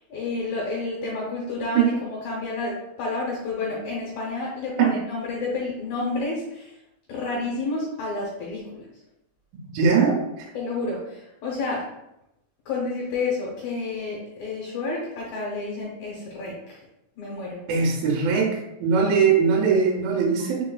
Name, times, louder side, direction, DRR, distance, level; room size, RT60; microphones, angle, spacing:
voice 1, 0.1-6.7 7.1-8.8 10.5-11.8 12.7-16.5 17.2-17.6, left 3 dB, 70° left, -4 dB, 2.0 m, -30 dB
voice 2, 9.6-10.5 17.7-20.6, right 6 dB, 85° right, -1 dB, 2.4 m, -21 dB
5.5 x 3.9 x 2.2 m, 0.87 s
omnidirectional pair, 4.0 m